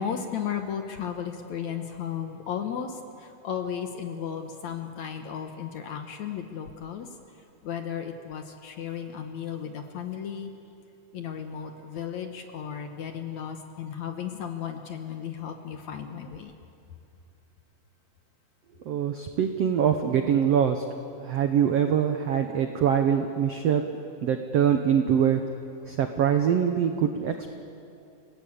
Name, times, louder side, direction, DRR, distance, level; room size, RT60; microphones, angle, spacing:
voice 1, 0.0-7.1 7.6-10.5 11.1-16.6, left 8 dB, 65° left, 6 dB, 2.0 m, -34 dB
voice 2, 18.8-20.8 21.2-23.8 24.2-25.4 25.9-27.5, right 8 dB, 85° right, 6 dB, 1.4 m, -23 dB
29.5 x 17.5 x 8.5 m, 2.7 s
omnidirectional pair, 4.4 m